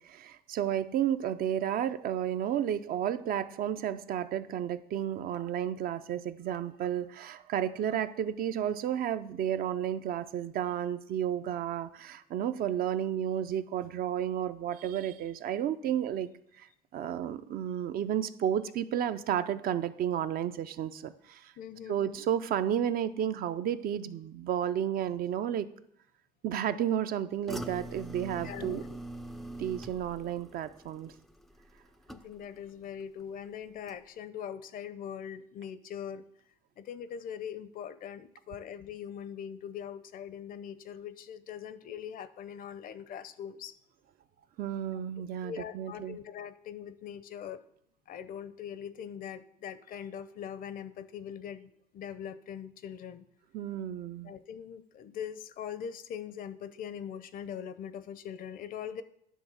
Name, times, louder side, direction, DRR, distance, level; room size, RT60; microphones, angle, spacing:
voice 1, 0.0-16.3 16.6-16.7 16.9-21.5 21.9-25.7 26.4-28.8 29.6-31.1 44.6-46.2 53.5-54.3, right 10 dB, 60° right, 11 dB, 0.5 m, -32 dB
voice 2, 21.6-22.2 28.4-28.9 32.1-36.2 36.8-43.8 45.4-47.6 48.1-53.3 54.2-59.0, left 8 dB, 55° left, 14 dB, 0.6 m, -42 dB
sound 1, 27.5-32.7 33.0-33.5 33.9-34.0, right 1 dB, ahead, 0.3 m, -44 dB
10.0 x 3.5 x 6.1 m, 0.72 s
cardioid pair, 110°, 17 cm